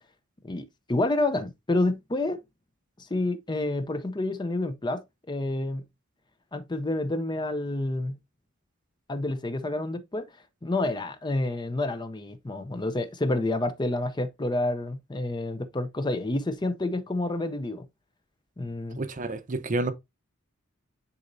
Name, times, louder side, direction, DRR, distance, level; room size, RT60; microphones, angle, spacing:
voice 1, 0.4-2.4 3.0-5.8 6.5-8.2 9.1-10.3 10.6-17.8 18.6-19.0, left 2 dB, 20° left, 0.6 m, -29 dB
voice 2, 19.0-19.9, right 2 dB, 40° right, 0.7 m, -29 dB
9.7 x 4.2 x 2.6 m
head